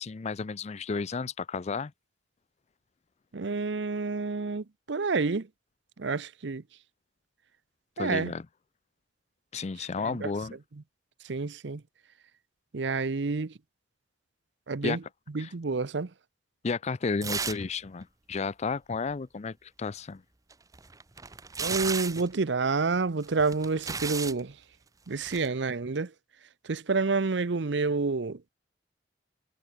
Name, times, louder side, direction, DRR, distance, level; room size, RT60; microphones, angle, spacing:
voice 1, 0.0-1.9 8.0-8.4 9.5-10.6 14.8-15.0 15.4-15.5 16.6-20.2, left 4 dB, 35° left, 0.5 m, -32 dB
voice 2, 3.3-5.5 6.0-6.6 8.0-8.3 10.0-10.3 11.2-11.8 12.7-13.5 14.7-15.0 15.3-16.1 21.6-24.6 25.1-26.1 26.6-28.5, right 4 dB, 70° right, 0.7 m, -29 dB
sound 1, 17.2-17.8 18.0-18.1 20.5-22.3 23.2-24.4 25.2-25.5, right 5 dB, 20° right, 0.7 m, -34 dB
head